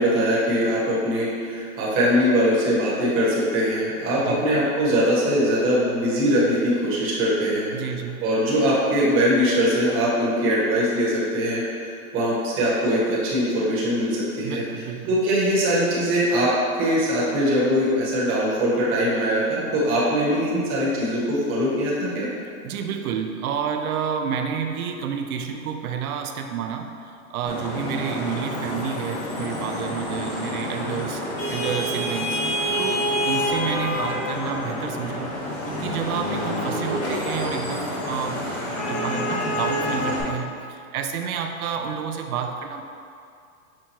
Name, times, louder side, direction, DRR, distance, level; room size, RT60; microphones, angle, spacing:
voice 1, 0.0-7.7 8.2-16.5 16.8-22.3, equal, 30° right, -7 dB, 1.1 m, -22 dB
voice 2, 4.2-4.5 7.7-8.2 14.4-15.2 22.6-31.2 31.5-32.4 32.8-35.3 35.7-38.4 38.9-42.8, right 7 dB, 85° right, 5 dB, 0.5 m, -30 dB
Vehicle horn car horn honking / Traffic noise roadway noise, 27.5-40.2, equal, 35° left, 0.8 m, -27 dB
5.9 x 2.2 x 2.9 m, 2.4 s
hypercardioid pair, 130°, 43 cm